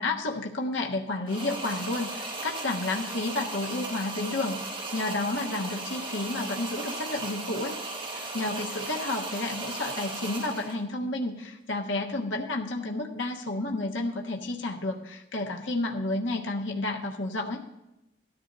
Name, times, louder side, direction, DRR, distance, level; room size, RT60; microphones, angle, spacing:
voice 1, 0.0-17.6, left 2 dB, 80° left, 1 dB, 1.3 m, -31 dB
sound 1, 1.3-10.8, right 2 dB, 25° right, 1.6 m, -36 dB
18.5 x 13.5 x 2.7 m, 0.94 s
head